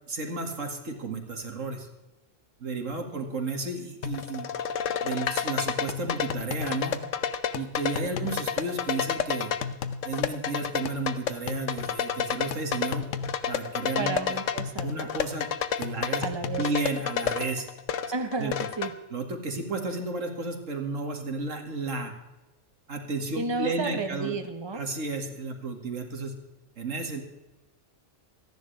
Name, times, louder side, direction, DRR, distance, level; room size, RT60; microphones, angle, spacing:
voice 1, 0.1-1.9 2.6-4.5 5.0-7.0 7.5-9.5 10.0-13.1 13.5-14.4 14.8-15.5 15.8-16.2 16.6-17.7 18.4-18.5 19.1-22.1 22.9-24.4 24.7-26.3 26.8-27.2, right 3 dB, 80° right, 4 dB, 2.4 m, -32 dB
sound 1, 4.0-18.9, left 7 dB, 80° left, 1.2 m, -30 dB
voice 2, 14.0-15.1 16.2-16.7 18.1-18.9 23.3-24.8, right 3 dB, 20° right, 6 dB, 1.2 m, -32 dB
27.5 x 10.5 x 3.4 m, 1.1 s
omnidirectional pair, 1.3 m